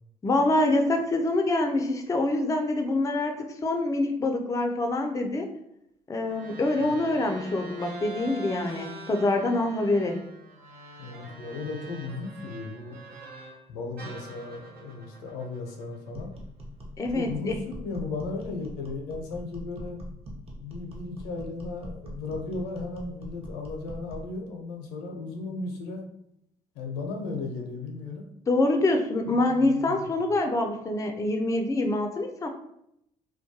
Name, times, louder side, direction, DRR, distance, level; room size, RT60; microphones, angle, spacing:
voice 1, 0.2-5.5 6.1-10.2 17.0-17.5 28.5-32.5, left 2 dB, 20° left, 4 dB, 0.4 m, -25 dB
sound 1, 6.2-13.6 14.0-16.4, right 2 dB, 70° right, 0.6 m, -44 dB
voice 2, 11.0-13.0 13.7-16.3 17.1-20.0 20.6-26.0 26.7-28.3 29.3-30.1, left 3 dB, 80° left, 2 dB, 0.5 m, -36 dB
sound 2, 16.1-24.3, equal, 40° right, 0.8 m, -42 dB
2.2 x 2.2 x 2.7 m, 0.77 s
hypercardioid pair, 55°, 16 cm